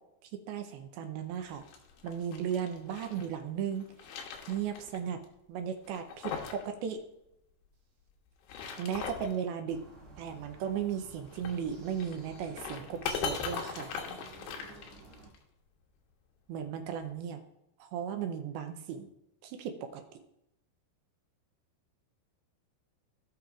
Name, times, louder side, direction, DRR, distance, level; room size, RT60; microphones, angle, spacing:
voice 1, 0.5-1.6 2.0-3.9 4.5-5.2 5.5-7.0 8.8-9.8 10.2-13.9 16.5-17.4 17.8-19.1 19.4-20.0, right 8 dB, 75° right, 6 dB, 2.5 m, -36 dB
sound 1, 1.5-3.3 3.7-5.0 5.2-5.3 5.8-6.7 6.9-7.0 8.3-9.4 11.3-15.4, left 6 dB, 75° left, 2.9 m, -40 dB
sound 2, 9.7-15.3, right 2 dB, 25° right, 2.7 m, -53 dB
17.0 x 5.9 x 2.5 m, 0.83 s
omnidirectional pair, 4.7 m